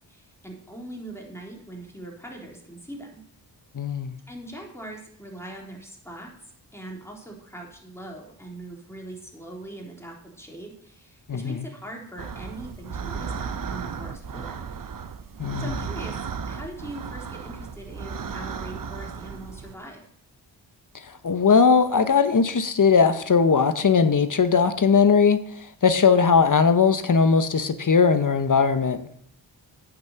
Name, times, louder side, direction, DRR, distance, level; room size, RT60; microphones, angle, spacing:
voice 1, 0.1-3.2 4.3-6.3 6.7-14.6 15.6-16.2 16.5-20.1, right 1 dB, 5° left, -1 dB, 3.7 m, -41 dB
voice 2, 3.7-4.2 11.3-11.6 15.4-15.7 21.2-29.1, left 5 dB, 45° left, 11 dB, 0.9 m, -19 dB
sound 1, 12.2-19.8, right 6 dB, 50° right, 0.8 m, -35 dB
8.8 x 6.1 x 8.0 m, 0.66 s
cardioid pair, 55°, 44 cm